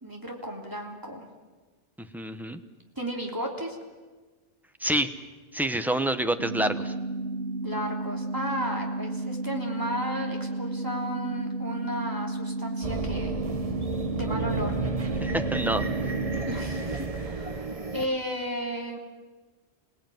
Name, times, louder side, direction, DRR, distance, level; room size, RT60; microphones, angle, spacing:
voice 1, 0.0-1.2 3.0-3.8 7.6-13.4 14.1-14.7 16.4-19.0, equal, 15° right, 0 dB, 3.3 m, -34 dB
voice 2, 2.1-2.6 4.8-5.1 5.5-6.9 15.2-15.9, right 1 dB, ahead, 9 dB, 1.1 m, -27 dB
sound 1, 6.4-16.4, right 2 dB, 85° right, 2.3 m, -32 dB
sound 2, 12.8-18.1, right 3 dB, 30° right, 1.1 m, -32 dB
27.5 x 18.5 x 9.3 m, 1.3 s
omnidirectional pair, 1.2 m